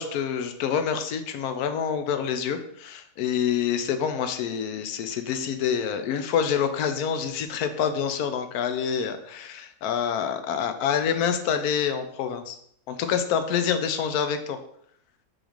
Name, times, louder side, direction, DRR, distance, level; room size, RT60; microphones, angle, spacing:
voice 1, 0.0-12.6 12.9-14.6, left 7 dB, 75° left, 8 dB, 1.1 m, -27 dB
6.2 x 3.3 x 5.0 m, 0.69 s
omnidirectional pair, 1.7 m